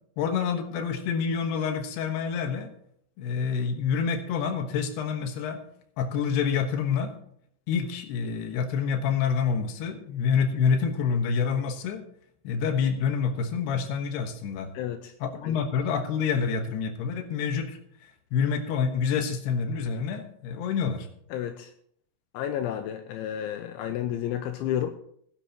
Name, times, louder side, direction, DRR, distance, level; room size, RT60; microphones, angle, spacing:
voice 1, 0.2-2.7 3.2-5.6 6.0-7.1 7.7-12.0 12.4-14.7 15.2-21.1, left 6 dB, 65° left, 6 dB, 2.9 m, -27 dB
voice 2, 14.7-15.1 15.4-15.6 21.3-21.7 22.3-24.9, left 10 dB, 85° left, 7 dB, 2.9 m, -31 dB
18.5 x 11.0 x 3.0 m, 0.68 s
omnidirectional pair, 5.7 m